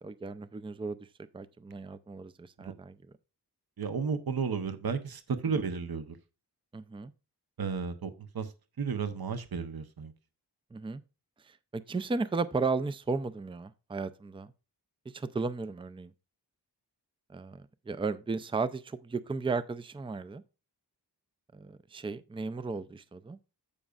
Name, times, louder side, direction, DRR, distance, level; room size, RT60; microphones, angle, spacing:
voice 1, 0.0-1.0 1.3-3.0 6.7-7.1 10.7-11.0 11.5-14.5 15.1-16.1 17.3-20.4 21.5-23.4, right 4 dB, 15° right, 0.4 m, -35 dB
voice 2, 3.8-6.2 7.6-10.1, right 5 dB, 60° right, 1.0 m, -33 dB
15.0 x 5.2 x 2.4 m
wide cardioid pair, 75°, 41 cm